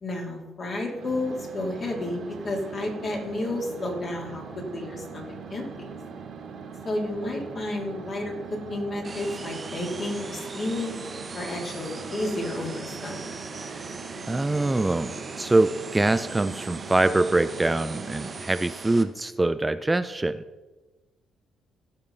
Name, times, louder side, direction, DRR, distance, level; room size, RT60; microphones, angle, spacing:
voice 1, 0.0-4.4 4.7-5.9 6.8-11.0 11.3-13.4, left 1 dB, 45° left, -1 dB, 2.8 m, -31 dB
sound 1, 0.9-18.4, right 5 dB, 65° right, 1.6 m, -41 dB
sound 2, 9.0-19.0, right 4 dB, 30° right, 1.0 m, -40 dB
voice 2, 14.3-20.4, right 2 dB, 15° right, 11 dB, 0.4 m, -24 dB
16.0 x 5.6 x 4.0 m, 1.2 s
cardioid pair, 90°, 0 cm